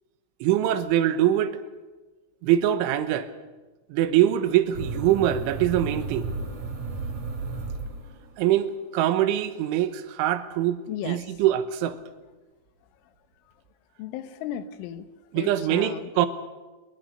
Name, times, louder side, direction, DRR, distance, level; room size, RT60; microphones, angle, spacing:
voice 1, 0.4-1.6 2.4-3.3 3.9-6.3 8.4-12.0 15.3-16.3, right 12 dB, 80° right, 10 dB, 3.6 m, -23 dB
sound 1, 4.7-8.5, right 3 dB, 45° right, 3.5 m, -33 dB
voice 2, 10.9-11.2 14.0-15.1 15.4-16.1, left 10 dB, 80° left, 11 dB, 3.4 m, -35 dB
25.5 x 22.5 x 6.8 m, 1.2 s
omnidirectional pair, 5.6 m